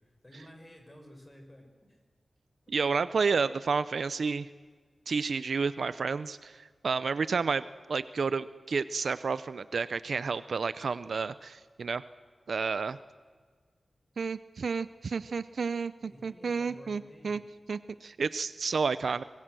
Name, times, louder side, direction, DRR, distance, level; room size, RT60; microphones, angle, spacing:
voice 1, 0.0-1.7 16.0-17.4, equal, 20° left, 4 dB, 5.2 m, -52 dB
voice 2, 2.7-4.5 5.1-12.0 12.5-13.0 14.2-17.4 17.7-19.2, right 5 dB, 75° right, 14 dB, 0.6 m, -31 dB
25.0 x 21.0 x 7.7 m, 1.5 s
wide cardioid pair, 100°, 0 cm